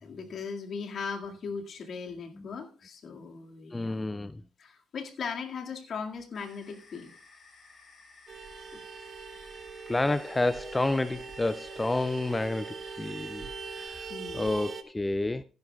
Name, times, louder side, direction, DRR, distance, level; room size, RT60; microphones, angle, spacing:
voice 1, 0.0-4.0 4.6-7.1 14.1-14.5, left 5 dB, 60° left, 2.0 m, -38 dB
voice 2, 3.7-4.4 9.9-13.5 13.8-14.1 14.3-15.4, left 2 dB, 15° left, 0.4 m, -30 dB
sound 1, 6.3-13.8, left 3 dB, 40° left, 5.9 m, -55 dB
Vehicle horn car horn honking, 8.3-14.8, right 5 dB, 55° right, 1.1 m, -42 dB
15.5 x 10.5 x 2.3 m
cardioid pair, 90°, 0 cm